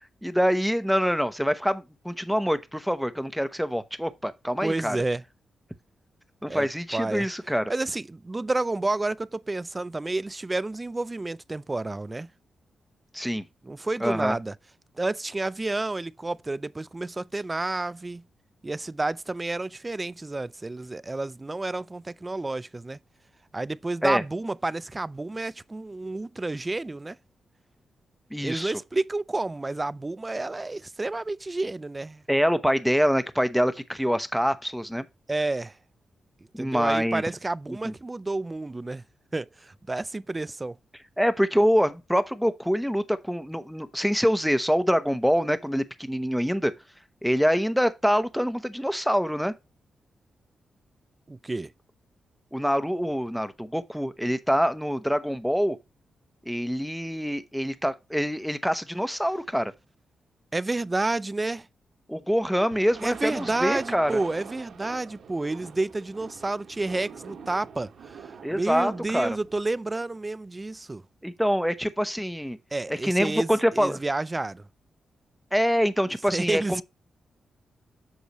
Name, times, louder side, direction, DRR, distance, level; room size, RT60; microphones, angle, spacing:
voice 1, 0.2-5.0 6.4-7.7 13.1-13.4 14.0-14.4 24.0-24.2 28.3-28.7 32.3-35.1 36.5-37.2 37.7-37.9 41.2-46.7 47.2-49.5 52.5-55.8 56.5-59.7 62.1-64.2 68.4-69.4 71.2-72.6 72.9-74.0 75.5-76.8, equal, ahead, 0.9 m, -25 dB
voice 2, 4.6-5.2 6.5-6.7 6.9-7.3 7.7-12.3 13.6-14.5 15.0-18.2 18.6-23.0 23.5-27.2 28.4-32.2 35.3-35.7 36.6-39.0 39.3-40.8 51.3-51.7 60.5-61.7 63.0-68.2 68.5-71.0 72.7-74.6 76.3-76.8, right 2 dB, 20° right, 0.4 m, -30 dB
sound 1, 62.7-69.6, right 6 dB, 75° right, 1.8 m, -44 dB
8.3 x 6.4 x 3.0 m
cardioid pair, 100°, 0 cm